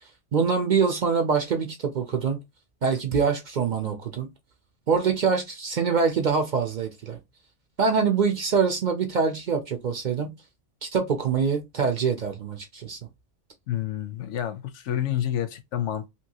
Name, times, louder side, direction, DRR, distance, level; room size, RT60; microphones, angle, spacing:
voice 1, 0.3-2.4 2.8-4.3 4.9-7.2 7.8-10.3 10.8-13.0, right 5 dB, 55° right, 0.6 m, -24 dB
voice 2, 13.7-16.1, left 11 dB, 90° left, 0.9 m, -29 dB
2.9 x 2.7 x 2.7 m
omnidirectional pair, 1.2 m